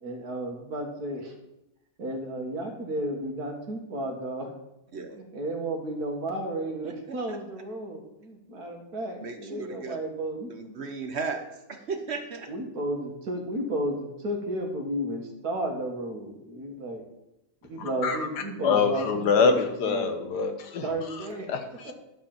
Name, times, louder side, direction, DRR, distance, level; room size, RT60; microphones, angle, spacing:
voice 1, 0.0-1.3 2.0-4.5 5.1-10.5 12.5-17.0 17.6-19.6 19.9-20.1 20.8-21.5 21.9-22.0, right 1 dB, 70° right, 3 dB, 2.3 m, -33 dB
voice 2, 6.8-7.4 9.2-10.0 10.5-12.5, right 4 dB, 50° right, 7 dB, 1.1 m, -36 dB
voice 3, 17.8-21.9, left 5 dB, 85° left, 7 dB, 1.7 m, -26 dB
11.5 x 5.3 x 7.1 m, 0.88 s
omnidirectional pair, 1.7 m